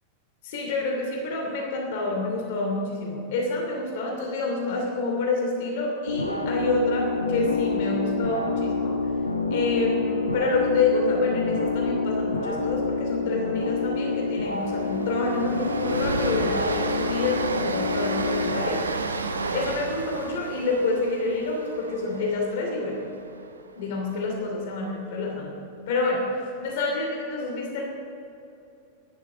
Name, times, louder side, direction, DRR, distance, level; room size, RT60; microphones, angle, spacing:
voice 1, 0.4-9.0 9.5-18.8 19.5-23.0 23.8-25.6 25.9-26.2 26.6-27.9, left 3 dB, 50° left, 0 dB, 2.7 m, -27 dB
sound 1, 6.1-18.7, left 3 dB, 85° left, 1.0 m, -28 dB
Train, 12.5-12.8 13.0-13.2 13.6-23.7, right 4 dB, 75° right, 0.8 m, -32 dB
12.5 x 11.0 x 6.3 m, 2.8 s
figure-of-eight pair, 90°, 0 cm